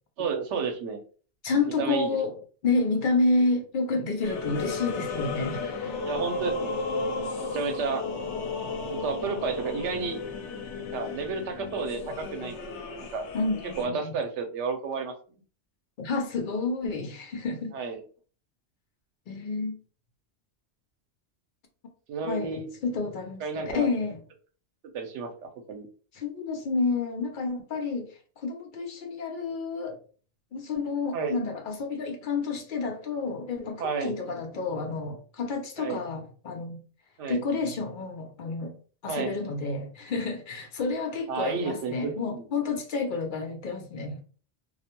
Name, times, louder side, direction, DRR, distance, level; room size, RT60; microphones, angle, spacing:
voice 1, 0.2-1.0 1.8-2.2 6.0-8.0 8.9-10.2 10.9-13.3 13.8-15.1 17.7-18.0 22.1-22.7 23.4-23.9 24.9-25.9 31.1-31.4 33.8-34.2 35.8-36.0 37.2-37.4 39.1-39.4 41.3-42.4, right 5 dB, 90° right, 0.9 m, -32 dB
voice 2, 1.4-2.3 2.6-6.0 13.3-14.2 16.0-17.7 19.3-19.8 22.2-24.2 26.1-30.0 30.5-36.8 37.3-38.7 39.0-44.2, left 3 dB, 60° left, 0.6 m, -30 dB
sound 1, 4.2-13.8, left 4 dB, 80° left, 0.9 m, -34 dB
2.4 x 2.1 x 2.8 m
omnidirectional pair, 1.2 m